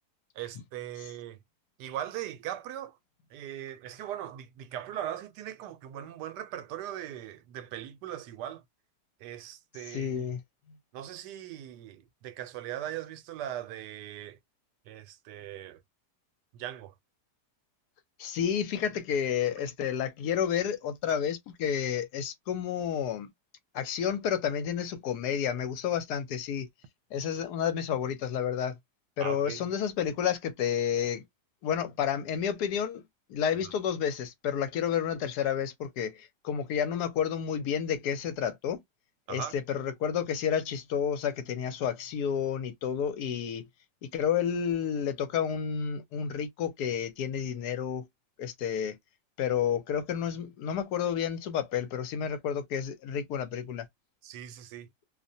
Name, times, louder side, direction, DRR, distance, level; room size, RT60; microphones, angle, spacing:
voice 1, 0.4-1.4 1.8-3.0 3.3-8.6 9.2-10.3 10.9-14.4 14.9-15.8 16.5-16.9 29.2-29.6 39.3-39.5 54.2-54.9, right 11 dB, 85° right, 1.2 m, -39 dB
voice 2, 9.9-10.4 18.2-23.3 23.7-26.7 27.1-28.8 29.2-31.2 31.6-33.0 33.3-38.8 39.3-43.7 44.0-48.1 48.4-49.0 49.4-53.9, left 8 dB, 80° left, 1.1 m, -30 dB
2.8 x 2.1 x 2.6 m
omnidirectional pair, 1.8 m